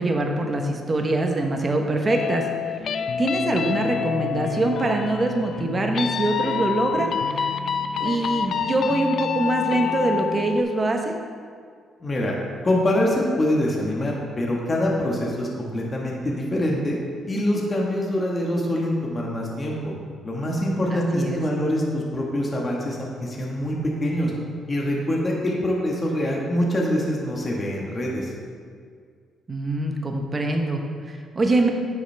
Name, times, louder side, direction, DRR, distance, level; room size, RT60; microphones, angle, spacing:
voice 1, 0.0-2.8 3.2-7.6 8.0-11.2 20.9-21.4 29.5-31.7, right 2 dB, 30° right, 3 dB, 0.9 m, -24 dB
sound 1, 2.1-10.6, left 7 dB, 60° left, 0.4 m, -27 dB
voice 2, 12.0-12.3 12.6-17.0 17.3-19.9 20.2-24.3 24.7-28.3, left 1 dB, 30° left, -2 dB, 1.4 m, -24 dB
10.0 x 6.4 x 3.4 m, 2.1 s
cardioid pair, 90°, 0 cm